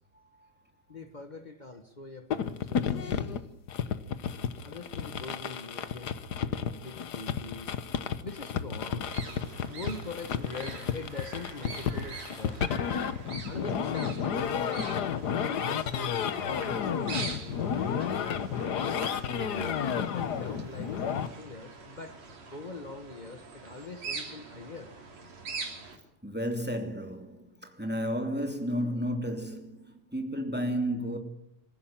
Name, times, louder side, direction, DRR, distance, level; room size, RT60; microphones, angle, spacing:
voice 1, 0.9-3.3 4.6-6.1 6.7-7.7 8.2-9.1 9.7-12.6 13.5-15.0 15.3-18.5 19.4-22.2 22.5-24.9, left 2 dB, 65° left, 0.4 m, -43 dB
sound 1, 2.3-21.3, left 7 dB, 80° left, 0.9 m, -32 dB
voice 2, 3.0-3.3 26.2-31.2, equal, 5° right, 2.5 m, -32 dB
sound 2, 9.1-26.0, right 4 dB, 60° right, 4.6 m, -44 dB
26.0 x 16.0 x 8.9 m
omnidirectional pair, 3.4 m